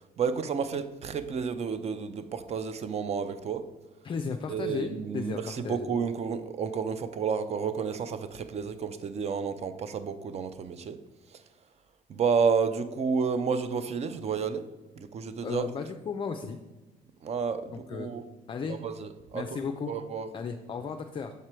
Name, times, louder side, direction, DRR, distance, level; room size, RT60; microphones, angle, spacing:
voice 1, 0.2-3.7 4.5-11.0 11.3-11.4 12.1-14.7 15.0-15.7 17.2-18.2 18.7-19.6 19.9-20.3 20.8-20.9, right 6 dB, 40° right, 0.5 m, -31 dB
voice 2, 4.0-5.9 15.4-16.6 17.7-18.1 18.5-18.8 19.3-19.9 20.3-21.3, left 5 dB, 30° left, 0.4 m, -35 dB
6.8 x 4.7 x 4.4 m
cardioid pair, 110°, 17 cm